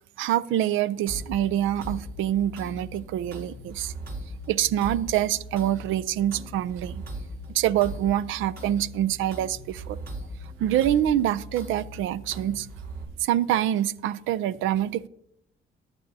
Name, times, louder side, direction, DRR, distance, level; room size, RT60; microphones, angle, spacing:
voice 1, 0.2-3.9 4.5-7.1 7.5-10.0 10.6-12.7 13.2-15.1, right 12 dB, 85° right, 0.4 m, -25 dB
sound 1, 1.1-13.0, right 1 dB, 50° right, 4.4 m, -39 dB
14.5 x 9.9 x 2.7 m
cardioid pair, 90°, 20 cm